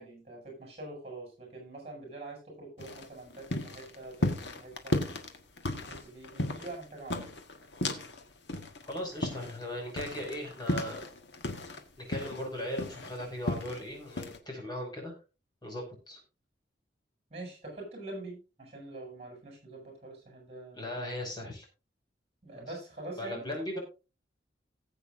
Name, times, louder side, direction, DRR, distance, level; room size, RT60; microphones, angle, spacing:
voice 1, 0.0-5.0 5.8-7.3 17.3-21.1 21.4-21.5 22.4-23.5, right 2 dB, 35° right, 0 dB, 8.0 m, -45 dB
sound 1, 2.8-8.2 8.5-11.8 12.1-13.8 14.2-14.4, left 1 dB, 70° left, 1.5 m, -34 dB
voice 2, 8.9-11.0 12.0-15.1 15.6-16.2 20.7-21.7 22.5-22.7 23.1-23.8, left 1 dB, 25° left, 0 dB, 5.9 m, -38 dB
19.0 x 8.2 x 2.6 m, 0.32 s
head